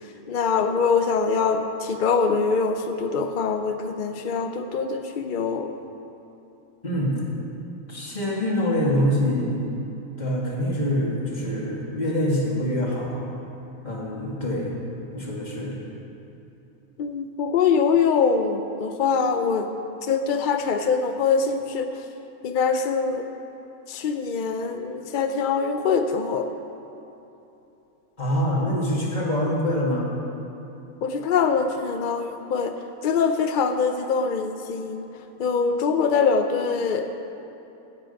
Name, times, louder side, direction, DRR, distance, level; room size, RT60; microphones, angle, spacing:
voice 1, 0.3-5.7 17.0-19.7 20.1-21.9 22.4-23.3 23.9-26.5 31.0-32.8 33.0-35.0 35.4-37.2, left 5 dB, 70° left, 7 dB, 0.4 m, -23 dB
voice 2, 6.8-7.1 7.9-9.7 10.2-13.3 13.8-14.7 15.1-15.8 28.2-30.1, equal, 30° left, -3 dB, 2.0 m, -25 dB
15.5 x 7.7 x 5.3 m, 2.9 s
omnidirectional pair, 1.5 m